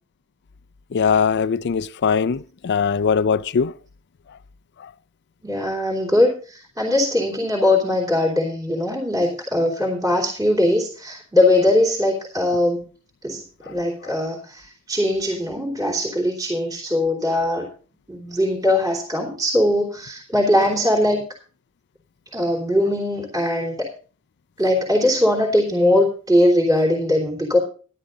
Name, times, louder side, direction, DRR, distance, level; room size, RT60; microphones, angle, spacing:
voice 1, 0.9-3.7, left 6 dB, 55° left, 0.4 m, -20 dB
voice 2, 5.4-12.9 13.2-17.7 18.1-21.2 22.3-23.9 24.6-27.6, left 1 dB, 20° right, 3.3 m, -20 dB
12.0 x 11.5 x 3.9 m
head